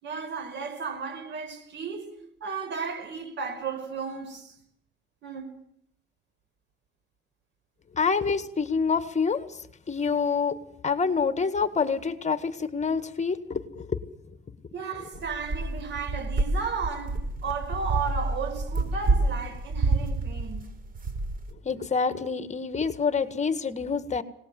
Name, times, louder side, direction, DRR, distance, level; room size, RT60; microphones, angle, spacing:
voice 1, 0.0-2.1 2.4-4.6 5.2-5.5 14.7-20.6, right 5 dB, 65° right, 5.1 m, -34 dB
voice 2, 7.9-9.5 9.9-10.6 10.8-14.0 21.6-24.2, left 5 dB, 35° left, 1.7 m, -27 dB
sound 1, 15.1-21.5, right 3 dB, 45° right, 3.7 m, -28 dB
25.0 x 19.0 x 7.7 m
cardioid pair, 90°, 20 cm